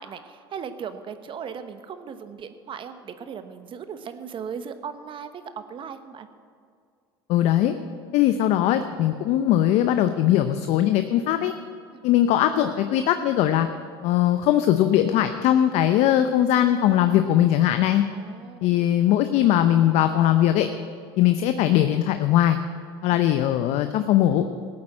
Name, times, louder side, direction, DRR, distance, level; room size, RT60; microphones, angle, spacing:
voice 1, 0.0-6.3 11.9-12.0 18.1-18.7 23.1-23.2, right 7 dB, 40° right, 10 dB, 1.0 m, -37 dB
voice 2, 7.3-7.7 8.1-11.5 12.0-13.7 14.0-18.0 18.6-20.7 21.2-22.6 23.0-24.5, left 12 dB, 60° left, 9 dB, 0.7 m, -20 dB
14.0 x 8.6 x 7.7 m, 2.3 s
hypercardioid pair, 80°, 13 cm